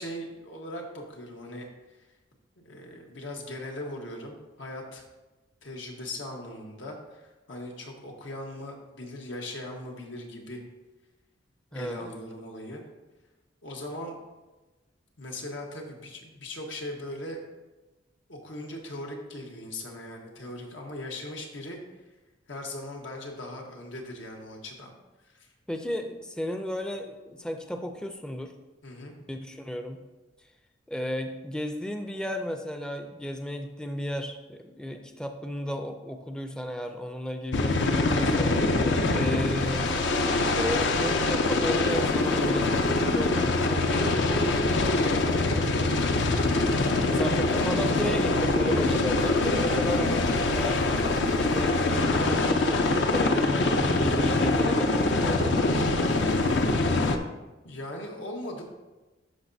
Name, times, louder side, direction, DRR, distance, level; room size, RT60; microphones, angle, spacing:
voice 1, 0.0-2.0 2.6-5.0 5.6-10.6 11.7-12.8 13.6-14.2 15.2-17.4 18.3-21.8 22.5-24.9 25.2-25.5 28.8-29.1 46.9-47.7 49.2-49.5 57.6-58.6, left 1 dB, 90° left, 1 dB, 1.3 m, -39 dB
voice 2, 11.7-12.1 25.7-28.5 29.3-30.0 30.9-38.5 39.1-44.6 47.1-50.8 51.3-55.7, equal, 5° left, 5 dB, 0.4 m, -34 dB
sound 1, 37.5-57.2, left 2 dB, 70° left, 0.6 m, -24 dB
12.0 x 4.9 x 2.7 m, 1.1 s
head